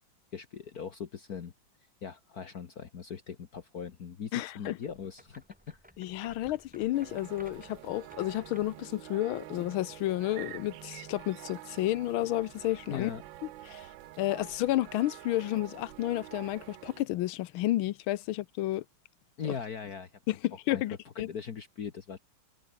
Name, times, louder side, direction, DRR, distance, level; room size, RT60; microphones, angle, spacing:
voice 1, 0.3-1.5 2.0-5.8 12.9-13.2 19.4-20.1 20.7-20.8 21.1-22.2, left 7 dB, 50° left, 1.7 m, -40 dB
voice 2, 4.3-4.8 6.0-13.1 13.7-13.9 14.2-18.8 20.3-21.3, left 15 dB, 85° left, 1.5 m, -31 dB
sound 1, 4.8-8.9, equal, 5° right, 5.0 m, -57 dB
sound 2, 6.9-17.0, right 14 dB, 70° right, 1.4 m, -47 dB
omnidirectional pair, 2.3 m